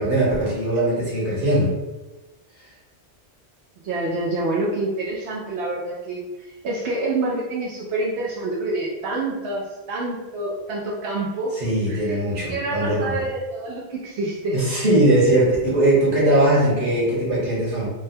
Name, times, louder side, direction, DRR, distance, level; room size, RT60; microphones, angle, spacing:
voice 1, 0.0-1.7 11.5-13.2 14.5-17.9, right 1 dB, 50° right, -7 dB, 1.3 m, -20 dB
voice 2, 3.8-11.6 11.9-12.2 12.5-14.6, right 2 dB, 90° right, -4 dB, 0.9 m, -27 dB
3.4 x 2.1 x 2.6 m, 1.1 s
omnidirectional pair, 1.1 m